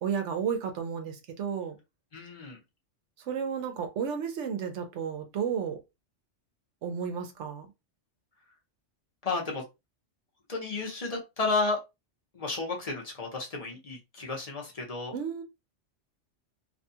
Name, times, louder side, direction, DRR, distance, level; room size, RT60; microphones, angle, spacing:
voice 1, 0.0-1.8 3.2-5.8 6.8-7.7 15.1-15.4, right 7 dB, 70° right, 0.9 m, -32 dB
voice 2, 2.1-2.6 9.2-9.6 10.5-11.8 12.3-15.1, left 3 dB, 35° left, 0.8 m, -32 dB
2.6 x 2.3 x 2.7 m
omnidirectional pair, 1.3 m